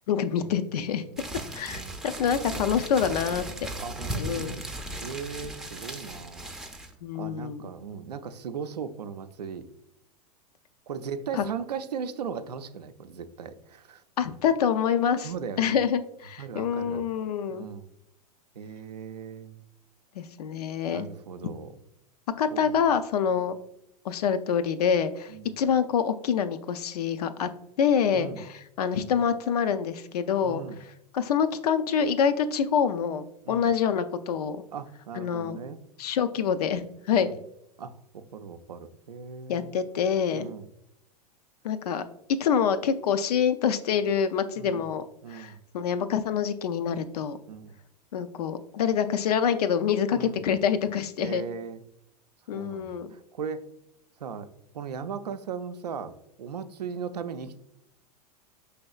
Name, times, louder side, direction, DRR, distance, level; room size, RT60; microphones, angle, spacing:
voice 1, 0.1-1.0 1.5-3.4 4.1-4.6 7.0-7.6 11.4-11.5 14.2-15.3 15.6-17.6 20.2-21.1 22.4-23.5 24.0-27.5 27.8-30.6 31.1-34.6 35.2-35.6 36.0-37.3 39.5-40.5 41.6-42.0 42.4-45.0 45.3-47.4 48.1-51.5 52.5-53.1, left 7 dB, 70° left, 11 dB, 0.4 m, -26 dB
sound 1, 1.2-6.9, right 1 dB, 5° right, 0.4 m, -37 dB
voice 2, 2.5-2.9 3.8-4.6 5.0-6.5 7.1-9.6 10.9-14.0 15.2-15.8 16.4-17.1 17.5-17.9 18.6-19.6 20.9-21.7 22.5-22.8 23.3-23.4 25.3-25.5 28.1-28.4 30.4-30.8 33.5-33.7 34.7-35.8 37.1-37.4 37.8-39.7 40.3-40.7 44.6-44.9 45.2-45.6 47.5-47.7 50.1-50.4 51.2-51.8 52.5-53.6 54.2-56.1 56.4-57.6, right 6 dB, 80° right, 10 dB, 0.4 m, -38 dB
5.4 x 3.3 x 2.3 m, 0.79 s
hypercardioid pair, 95°, 20 cm